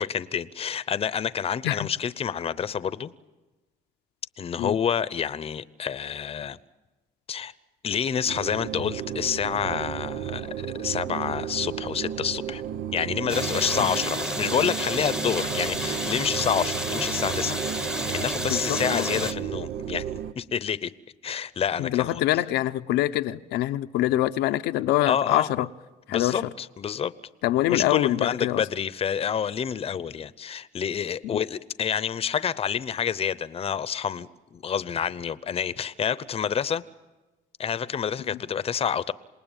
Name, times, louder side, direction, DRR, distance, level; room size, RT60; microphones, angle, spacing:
voice 1, 0.0-3.1 4.4-6.6 7.3-7.5 7.8-12.6 12.9-20.0 20.4-20.9 21.2-22.2 25.0-25.7 26.1-27.1 27.6-36.8 37.6-39.1, left 8 dB, 35° left, 0.8 m, -28 dB
sound 1, 8.3-20.3, right 10 dB, 75° right, 0.9 m, -33 dB
sound 2, 13.3-19.3, equal, 5° right, 1.0 m, -31 dB
voice 2, 18.5-19.1 21.8-25.7 26.1-26.5 27.4-28.6 31.2-31.3, left 15 dB, 90° left, 0.8 m, -25 dB
27.0 x 20.0 x 9.0 m
cardioid pair, 110°, 17 cm